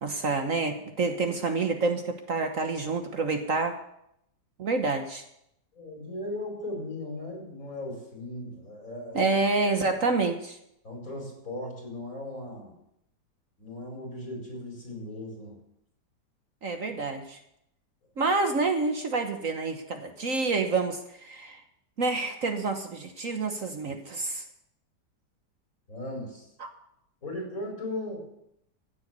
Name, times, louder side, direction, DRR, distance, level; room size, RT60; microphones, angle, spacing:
voice 1, 0.0-3.7 4.6-5.2 9.1-10.6 16.6-17.4 18.2-21.6 22.0-24.4, right 3 dB, 50° right, 5 dB, 1.5 m, -28 dB
voice 2, 5.7-9.3 10.8-12.8 13.6-15.6 23.8-23.9 25.9-26.5 27.2-28.3, left 1 dB, 50° left, 1 dB, 5.3 m, -37 dB
16.0 x 8.0 x 8.2 m, 0.77 s
omnidirectional pair, 1.8 m